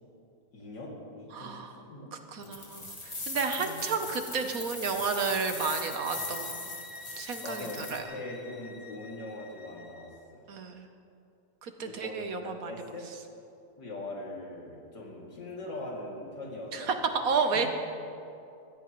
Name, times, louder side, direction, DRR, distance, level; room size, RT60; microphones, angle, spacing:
voice 1, 0.5-2.8 3.3-3.8 7.4-10.5 11.8-13.0 13.8-17.1 17.5-17.7, left 2 dB, 75° left, -3 dB, 3.1 m, -42 dB
voice 2, 1.3-1.7 2.3-6.6 7.2-8.0 10.5-10.9 11.6-12.7 16.7-17.7, right 5 dB, 60° right, 6 dB, 1.2 m, -31 dB
sound 1, 2.4-8.0, left 2 dB, 20° left, 1.2 m, -39 dB
sound 2, 5.3-10.2, left 3 dB, 60° left, 0.4 m, -49 dB
21.5 x 16.0 x 3.1 m, 2.6 s
omnidirectional pair, 1.8 m